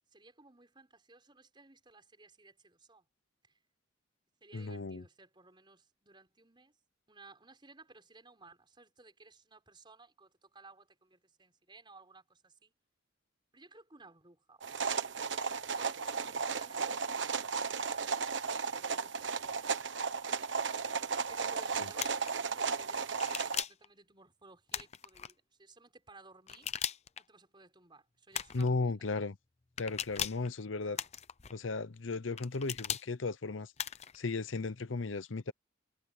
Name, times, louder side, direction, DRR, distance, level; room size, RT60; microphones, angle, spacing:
voice 1, 0.1-3.1 3.5-3.6 4.4-6.7 7.1-12.7 13.5-15.2 15.7-17.8 18.6-19.5 19.9-20.4 21.3-26.7 27.2-29.1 30.8-31.1, right 3 dB, 25° right, 5.3 m, -58 dB
voice 2, 4.5-5.0 21.8-21.9 28.5-29.4 29.8-31.0 31.5-33.7 34.1-35.5, left 3 dB, 85° left, 0.8 m, -35 dB
sound 1, 14.6-23.6, right 5 dB, 70° right, 1.2 m, -35 dB
sound 2, 22.0-22.3 23.2-23.9 24.7-25.3 26.5-27.2 28.3-28.7 29.8-30.5 31.0-31.5 32.4-33.1 33.8-34.2, left 9 dB, 35° left, 0.7 m, -38 dB
head